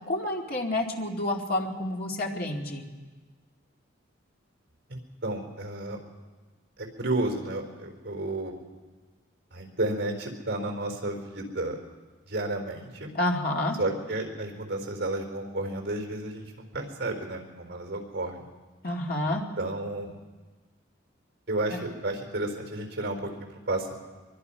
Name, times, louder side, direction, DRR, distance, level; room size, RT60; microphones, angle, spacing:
voice 1, 0.1-2.8 13.1-13.8 18.8-19.4, left 1 dB, 50° left, 0 dB, 2.4 m, -29 dB
voice 2, 4.9-6.0 6.8-8.6 9.5-11.8 12.3-13.1 13.8-18.4 19.2-20.2 21.5-23.9, right 2 dB, 60° right, 3 dB, 4.1 m, -32 dB
23.5 x 23.0 x 5.7 m, 1.3 s
head